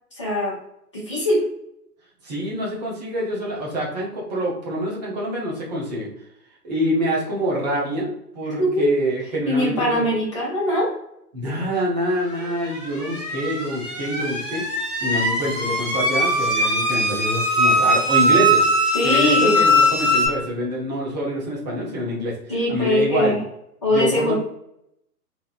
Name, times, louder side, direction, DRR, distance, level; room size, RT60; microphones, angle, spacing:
voice 1, 0.1-0.5 0.9-1.4 8.6-8.9 9.4-10.9 18.9-19.6 22.5-23.4 23.8-24.3, left 1 dB, 20° left, -7 dB, 0.4 m, -21 dB
voice 2, 2.2-6.1 6.6-10.0 11.3-18.6 19.0-22.4 22.7-23.4 23.9-24.3, equal, 25° right, -4 dB, 0.7 m, -26 dB
sound 1, 12.7-20.3, equal, 50° right, 1.1 m, -20 dB
2.9 x 2.0 x 2.4 m, 0.79 s
figure-of-eight pair, 130°, 49 cm